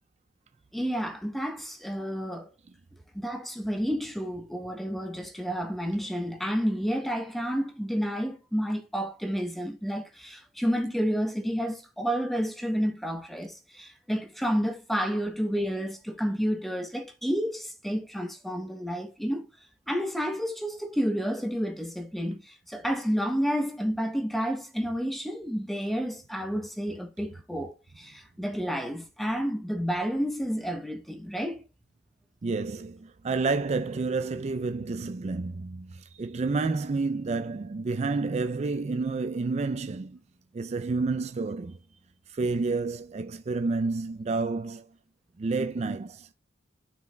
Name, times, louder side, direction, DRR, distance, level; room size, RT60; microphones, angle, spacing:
voice 1, 0.7-2.5 3.1-19.5 19.9-31.6, equal, ahead, 0.8 m, -30 dB
voice 2, 32.4-40.2 40.5-41.8 42.3-44.9 45.4-46.3, right 3 dB, 35° right, 0.3 m, -29 dB
12.5 x 4.6 x 2.2 m
head